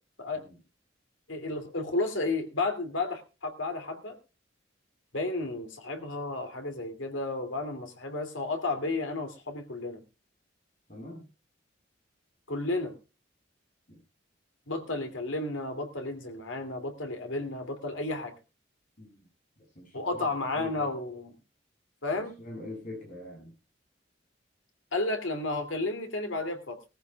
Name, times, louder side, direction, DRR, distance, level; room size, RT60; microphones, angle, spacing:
voice 1, 1.3-4.2 5.1-10.0 12.5-12.9 14.7-18.3 19.9-21.3 22.0-22.4 24.9-26.8, left 2 dB, 85° left, 6 dB, 2.6 m, -32 dB
voice 2, 10.9-11.3 13.9-14.0 14.9-15.0 19.0-19.3 19.7-21.0 22.4-23.5, left 1 dB, 45° left, 1 dB, 7.6 m, -44 dB
19.5 x 14.5 x 2.3 m, 0.30 s
head